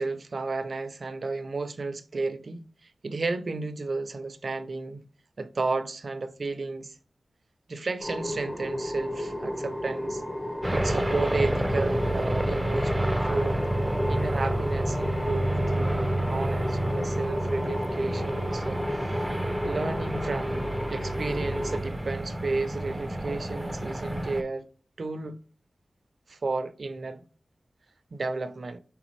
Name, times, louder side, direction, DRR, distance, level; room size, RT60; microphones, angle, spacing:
voice 1, 0.0-5.0 5.4-6.9 7.7-10.2 10.7-13.6 14.1-19.2 19.6-24.7 25.0-25.4 26.3-27.2 28.1-28.8, right 3 dB, 65° right, 0.5 m, -33 dB
sound 1, 8.0-21.8, left 1 dB, 30° left, 1.3 m, -33 dB
sound 2, 10.6-24.4, right 1 dB, 10° right, 0.5 m, -29 dB
5.0 x 3.4 x 3.1 m
wide cardioid pair, 65°, 0 cm